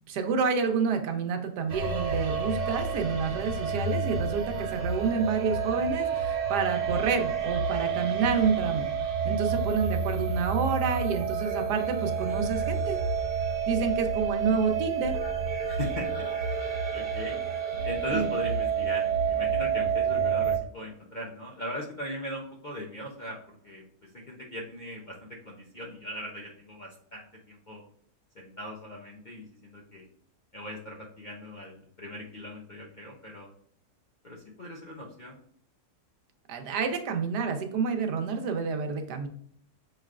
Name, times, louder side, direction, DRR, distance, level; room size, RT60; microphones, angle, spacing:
voice 1, 0.1-8.9 9.2-13.0 13.7-15.2 18.1-18.3 36.5-39.3, right 5 dB, 90° right, 5 dB, 1.3 m, -29 dB
sound 1, 1.7-20.6, right 6 dB, 70° right, 1.3 m, -29 dB
voice 2, 15.6-16.7 16.9-17.4 17.8-27.8 28.3-30.1 30.5-33.5 34.2-35.4, left 1 dB, 50° left, -2 dB, 0.5 m, -39 dB
5.8 x 3.2 x 2.4 m, 0.63 s
omnidirectional pair, 1.7 m